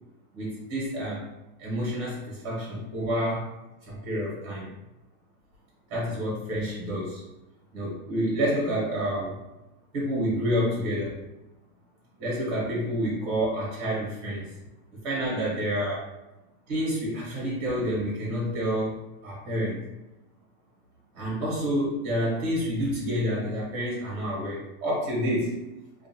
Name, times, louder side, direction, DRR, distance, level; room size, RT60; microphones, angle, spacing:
voice 1, 0.3-1.2 1.6-3.5 3.9-4.7 5.9-7.2 7.7-9.4 9.9-11.2 12.2-14.5 15.0-16.1 16.7-19.8 21.1-25.6, equal, 65° right, -5 dB, 1.1 m, -28 dB
2.5 x 2.4 x 2.7 m, 1.0 s
supercardioid pair, 175°, 46 cm